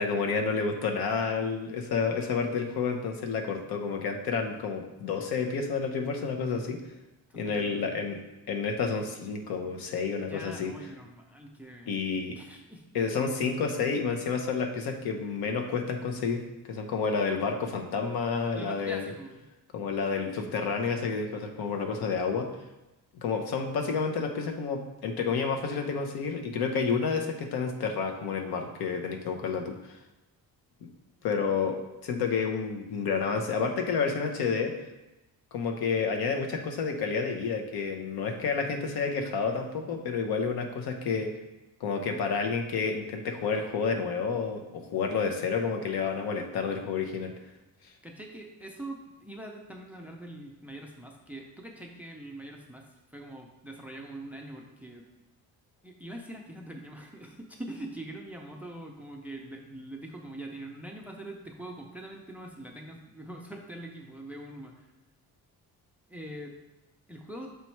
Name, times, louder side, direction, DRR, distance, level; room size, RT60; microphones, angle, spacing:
voice 1, 0.0-6.8 7.3-8.2 8.5-10.7 11.9-12.4 12.9-16.4 16.7-19.0 19.7-22.5 23.1-30.0 31.2-34.7 35.5-41.3 41.8-47.3, left 5 dB, 80° left, 4 dB, 0.9 m, -30 dB
voice 2, 7.3-8.0 10.2-12.0 12.4-12.8 18.5-19.4 31.4-31.7 48.0-55.0 55.8-64.9 66.1-66.5 67.1-67.5, right 1 dB, 5° right, 1 dB, 0.4 m, -43 dB
6.8 x 3.1 x 4.5 m, 1.0 s
cardioid pair, 160°, 37 cm